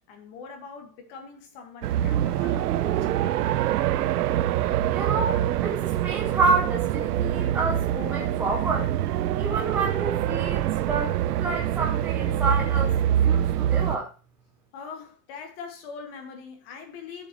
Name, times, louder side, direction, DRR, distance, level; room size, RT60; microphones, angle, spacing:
voice 1, 0.1-3.5 14.7-17.3, left 5 dB, 40° left, 1.9 m, -42 dB
sound 1, 1.8-14.0, right 11 dB, 85° right, 0.8 m, -25 dB
voice 2, 4.9-9.0 9.4-13.0 13.2-14.1, right 3 dB, 5° right, 0.5 m, -29 dB
14.0 x 7.1 x 3.0 m
supercardioid pair, 170°, 45 cm